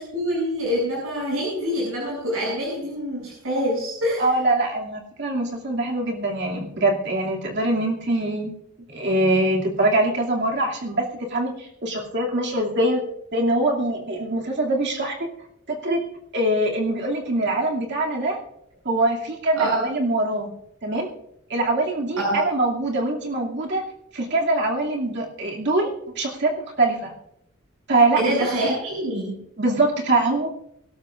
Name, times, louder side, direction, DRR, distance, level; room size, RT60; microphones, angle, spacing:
voice 1, 0.0-4.3 19.6-19.8 22.2-22.4 28.2-29.3, equal, 70° right, -4 dB, 7.1 m, -25 dB
voice 2, 4.2-8.5 8.9-13.0 13.3-15.3 15.7-16.0 16.3-18.4 18.8-20.5 20.8-21.1 21.5-23.8 24.1-26.5 26.8-27.1 27.9-28.2 28.6-28.7 29.6-30.5, right 2 dB, 55° right, -1 dB, 2.6 m, -23 dB
23.5 x 13.5 x 2.5 m, 0.80 s
head